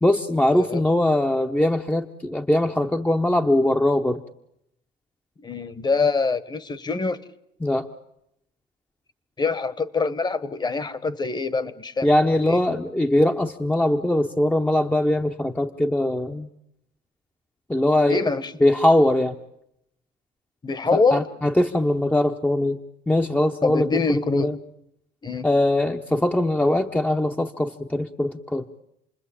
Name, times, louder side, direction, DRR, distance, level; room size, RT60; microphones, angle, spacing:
voice 1, 0.0-4.2 7.6-7.9 12.0-16.5 17.7-18.3 18.6-19.4 20.9-22.8 23.1-24.6 25.4-28.6, left 1 dB, 10° left, 5 dB, 1.0 m, -21 dB
voice 2, 0.5-0.8 5.4-7.2 9.4-12.1 12.5-12.6 18.1-18.5 20.6-21.3 23.6-24.5 25.2-25.5, left 4 dB, 25° left, 17 dB, 1.4 m, -24 dB
28.0 x 20.5 x 8.7 m, 0.78 s
cardioid pair, 110°, 17 cm